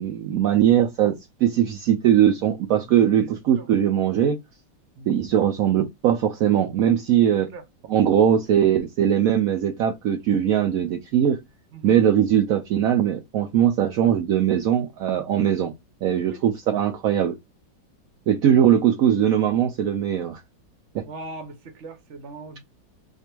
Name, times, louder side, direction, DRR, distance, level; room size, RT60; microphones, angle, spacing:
voice 1, 0.0-4.4 5.1-7.5 7.9-11.4 11.8-15.7 16.0-17.4 18.3-20.4 20.9-21.0, right 10 dB, 65° right, 0.9 m, -20 dB
voice 2, 2.7-3.7 5.0-5.1 7.5-7.6 11.7-12.0 16.3-16.4 18.5-18.8 21.1-22.6, right 3 dB, 45° right, 1.1 m, -40 dB
4.5 x 2.6 x 4.5 m
omnidirectional pair, 2.0 m